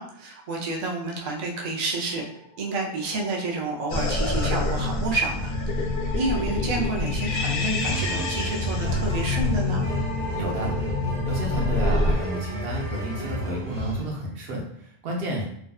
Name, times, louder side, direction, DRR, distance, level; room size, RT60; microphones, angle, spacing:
voice 1, 0.0-2.2 2.6-5.5 6.1-9.8, right 2 dB, 55° right, -1 dB, 0.5 m, -29 dB
sound 1, 1.9-13.3, equal, 90° right, 1.2 m, -41 dB
sound 2, 3.9-12.2, left 2 dB, 90° left, 0.9 m, -27 dB
sound 3, 7.8-14.1, equal, 20° right, 0.9 m, -32 dB
voice 2, 10.4-10.8 11.3-15.4, right 1 dB, 70° right, -1 dB, 0.8 m, -31 dB
2.6 x 2.2 x 2.2 m, 0.70 s
omnidirectional pair, 1.1 m